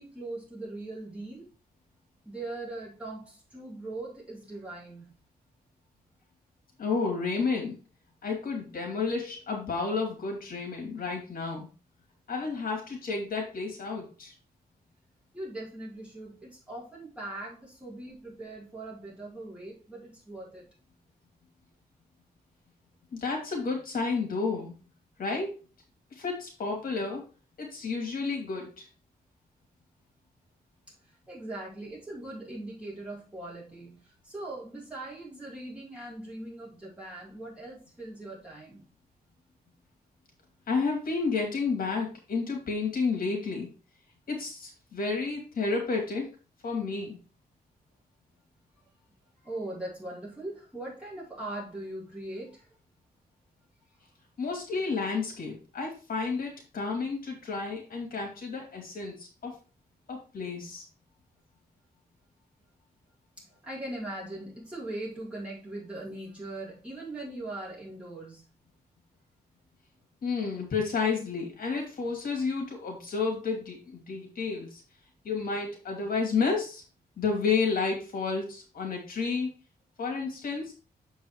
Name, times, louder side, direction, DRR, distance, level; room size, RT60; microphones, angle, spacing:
voice 1, 0.0-1.5 2.2-5.1 15.3-20.6 30.9-31.0 31.3-38.8 49.4-52.8 63.4-68.5, right 2 dB, 5° right, -6 dB, 4.6 m, -40 dB
voice 2, 6.8-7.8 8.2-11.7 12.3-14.3 23.1-24.7 25.2-25.6 26.1-27.2 27.6-28.9 40.7-43.7 44.3-46.3 46.6-47.2 54.4-59.5 60.1-60.8 70.2-74.8 75.2-76.8 77.2-79.5 80.0-80.7, left 4 dB, 65° left, 1 dB, 2.6 m, -31 dB
7.1 x 4.7 x 4.8 m, 0.33 s
wide cardioid pair, 140°, 16 cm